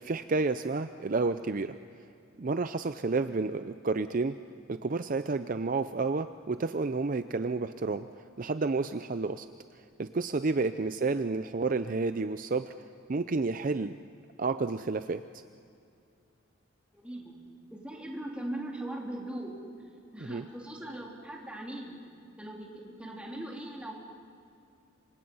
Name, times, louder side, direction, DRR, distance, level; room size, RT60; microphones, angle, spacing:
voice 1, 0.0-1.7 2.4-4.4 4.7-8.1 8.4-9.5 10.0-12.7 13.1-14.0 14.4-15.2 20.3-20.4, right 3 dB, 45° right, 10 dB, 0.5 m, -30 dB
voice 2, 16.9-17.3 17.7-19.6 20.1-22.0 22.4-23.9, right 1 dB, 5° right, -2 dB, 3.5 m, -40 dB
27.5 x 25.0 x 5.6 m, 2.5 s
head